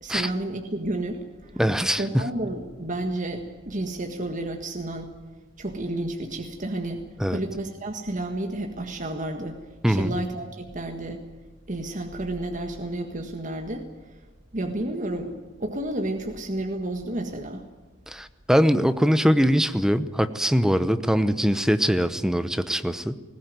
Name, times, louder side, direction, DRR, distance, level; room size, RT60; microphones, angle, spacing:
voice 1, 0.0-1.6 2.0-5.1 5.6-9.6 9.9-11.2 11.7-13.9 14.5-15.4 15.6-17.7, right 1 dB, 40° right, 4 dB, 1.7 m, -31 dB
voice 2, 1.6-2.3 7.2-7.4 9.8-10.2 18.1-23.2, equal, 5° right, 11 dB, 0.8 m, -22 dB
20.0 x 16.5 x 9.4 m, 1.3 s
head